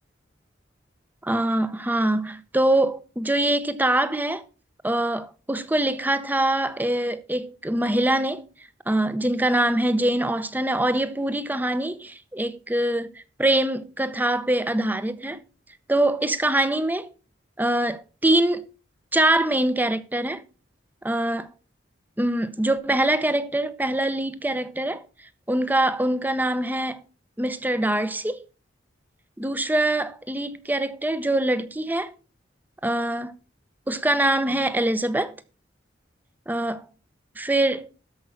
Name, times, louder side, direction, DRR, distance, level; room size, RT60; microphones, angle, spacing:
voice 1, 1.2-4.5 4.8-8.5 8.9-13.1 13.4-15.4 15.9-17.1 17.6-18.7 19.1-20.4 21.0-21.5 22.2-25.0 25.5-27.0 27.4-28.4 29.4-32.1 32.8-33.3 33.9-35.3 36.5-36.9 37.4-37.9, right 1 dB, 10° right, 0.7 m, -24 dB
13.0 x 5.4 x 6.0 m
head